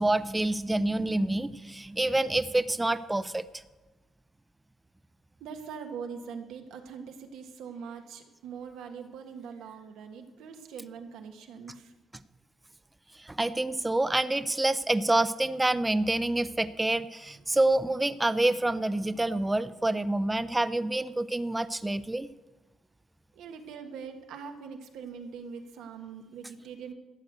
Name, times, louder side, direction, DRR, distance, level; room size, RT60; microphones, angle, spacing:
voice 1, 0.0-3.4 13.1-22.3, right 2 dB, 15° right, 14 dB, 0.5 m, -27 dB
voice 2, 5.4-11.9 23.3-26.9, right 6 dB, 90° right, 5 dB, 1.5 m, -42 dB
13.0 x 7.8 x 8.1 m, 1.2 s
cardioid pair, 90°, 0 cm